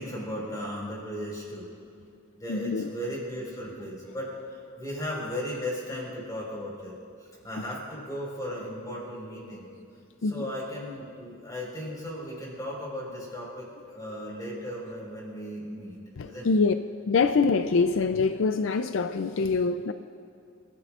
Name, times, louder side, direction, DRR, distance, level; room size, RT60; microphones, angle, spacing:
voice 1, 0.0-1.7 2.4-6.9 7.2-9.7 10.2-16.0 16.2-16.5, equal, 20° left, 4.5 m, -36 dB
voice 2, 2.5-2.9 7.6-7.7 9.4-9.9 10.2-10.5 14.5-14.6 16.2-16.7 17.1-19.9, left 4 dB, 75° left, 0.4 m, -25 dB
30.0 x 15.0 x 2.5 m
head